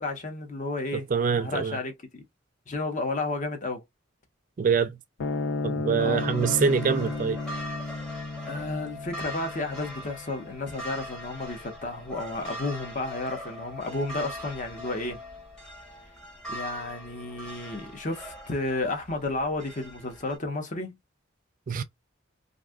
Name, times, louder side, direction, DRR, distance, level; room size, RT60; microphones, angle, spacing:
voice 1, 0.0-1.1 1.4-2.2 2.7-3.8 6.0-6.3 8.5-15.2 16.5-21.0, left 2 dB, 40° left, 0.8 m, -32 dB
voice 2, 1.1-1.8 4.6-5.0 5.6-7.4 21.7-21.8, right 6 dB, 40° right, 0.3 m, -24 dB
sound 1, 5.2-11.8, left 3 dB, 85° left, 0.5 m, -34 dB
sound 2, 6.2-20.4, left 1 dB, 5° left, 0.9 m, -41 dB
2.6 x 2.4 x 3.5 m
head